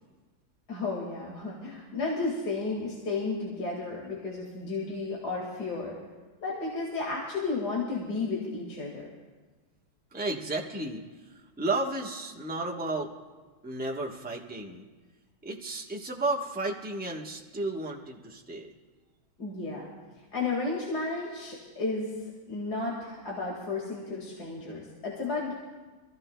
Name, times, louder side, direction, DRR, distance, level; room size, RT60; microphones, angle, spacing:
voice 1, 0.7-6.0 6.4-9.1 19.4-19.9 20.2-22.1 22.5-25.5, left 3 dB, 55° left, -3 dB, 2.4 m, -33 dB
voice 2, 10.1-13.1 13.6-14.9 15.4-18.7, right 2 dB, 10° right, -1 dB, 0.6 m, -33 dB
26.5 x 15.0 x 2.2 m, 1.3 s
omnidirectional pair, 2.2 m